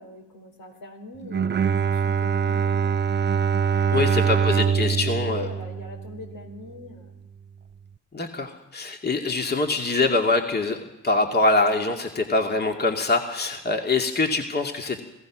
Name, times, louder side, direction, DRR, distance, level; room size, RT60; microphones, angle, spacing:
voice 1, 0.0-3.0 3.8-7.1, left 4 dB, 70° left, 4 dB, 4.5 m, -41 dB
Bowed string instrument, 1.2-6.6, right 7 dB, 30° right, 0.8 m, -24 dB
voice 2, 3.9-5.5 8.1-15.0, left 3 dB, 25° left, 3 dB, 2.4 m, -24 dB
27.0 x 16.5 x 6.2 m, 0.93 s
supercardioid pair, 55°, 35 cm